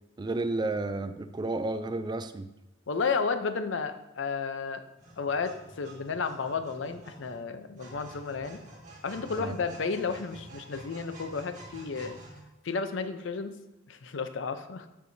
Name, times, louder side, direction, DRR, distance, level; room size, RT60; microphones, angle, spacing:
voice 1, 0.2-2.5 9.4-9.5, right 2 dB, 20° right, 11 dB, 0.3 m, -31 dB
voice 2, 2.9-4.8 5.2-8.6 9.0-12.2 12.6-13.6 13.9-14.9, left 5 dB, 70° left, 10 dB, 0.6 m, -32 dB
sound 1, 5.0-12.4, right 1 dB, 40° right, 2.0 m, -49 dB
13.5 x 4.7 x 2.7 m, 0.95 s
head